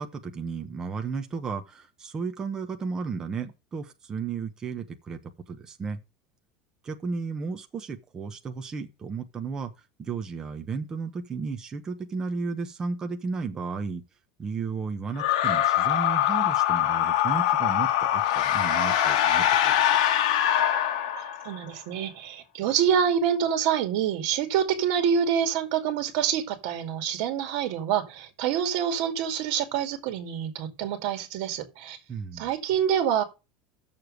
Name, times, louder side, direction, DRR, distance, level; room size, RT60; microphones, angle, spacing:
voice 1, 0.0-6.0 6.8-9.7 10.0-14.0 14.4-19.9 32.1-32.5, right 5 dB, 15° right, 1.0 m, -34 dB
sound 1, 15.2-21.6, left 11 dB, 75° left, 1.4 m, -23 dB
voice 2, 21.2-32.0 32.4-33.2, right 8 dB, 55° right, 2.4 m, -26 dB
7.7 x 7.0 x 6.4 m
supercardioid pair, 175°, 4 cm